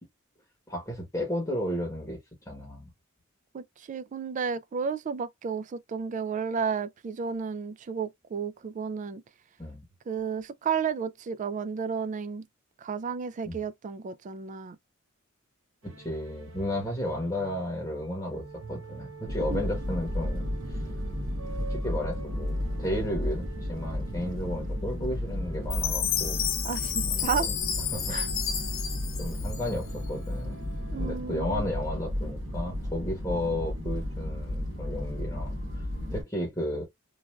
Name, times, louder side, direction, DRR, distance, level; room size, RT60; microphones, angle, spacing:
voice 1, 0.7-2.2 2.5-2.9 9.6-9.8 13.4-13.6 15.8-20.8 21.6-26.5 27.1-27.5 27.9-28.2 29.2-35.8 36.1-36.8, left 1 dB, 15° left, 1.0 m, -33 dB
voice 2, 3.5-9.2 10.1-12.5 12.8-14.8 19.5-19.6 26.6-27.5 28.1-28.3 30.9-31.7, right 6 dB, 40° right, 0.3 m, -32 dB
sound 1, 15.8-31.8, right 3 dB, 85° right, 0.7 m, -46 dB
sound 2, 19.3-36.2, left 1 dB, 70° right, 1.1 m, -33 dB
Chime, 25.7-30.1, left 9 dB, 70° left, 0.8 m, -31 dB
3.2 x 2.4 x 2.3 m
head